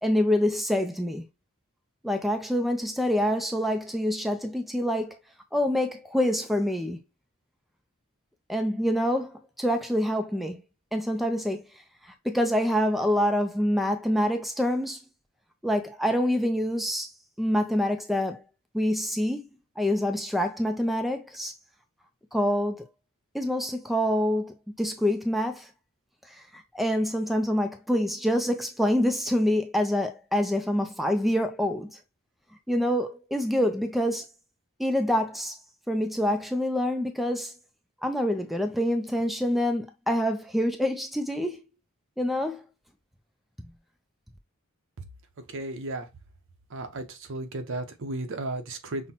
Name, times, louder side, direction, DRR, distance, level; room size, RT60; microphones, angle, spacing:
voice 1, 0.0-1.3 2.0-5.2 5.5-7.0 8.5-10.6 10.9-11.6 12.2-15.0 15.6-17.1 17.4-18.4 18.7-19.5 19.8-21.5 22.3-22.8 23.3-25.7 26.3-31.9 32.7-34.3 34.8-35.6 35.9-37.5 38.0-41.6 42.2-42.6, equal, ahead, 0.3 m, -26 dB
voice 2, 45.4-46.1 46.7-49.1, right 2 dB, 65° right, 0.7 m, -34 dB
5.6 x 2.1 x 2.8 m
head